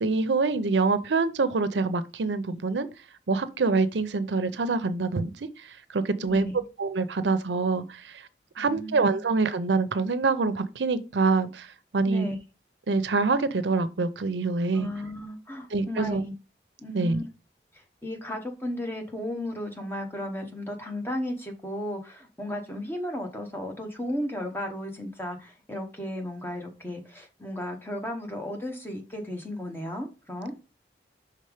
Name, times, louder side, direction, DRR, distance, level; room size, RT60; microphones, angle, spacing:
voice 1, 0.0-2.9 3.3-5.3 5.9-6.5 6.8-8.2 8.6-11.7 11.9-12.3 12.9-14.9 15.7-16.2 16.9-17.2, right 3 dB, 90° right, 0.6 m, -25 dB
voice 2, 6.2-6.7 8.6-9.2 12.1-12.4 14.7-16.3 16.8-17.2 17.7-30.5, left 1 dB, 10° left, 1.0 m, -34 dB
5.6 x 3.5 x 4.9 m
head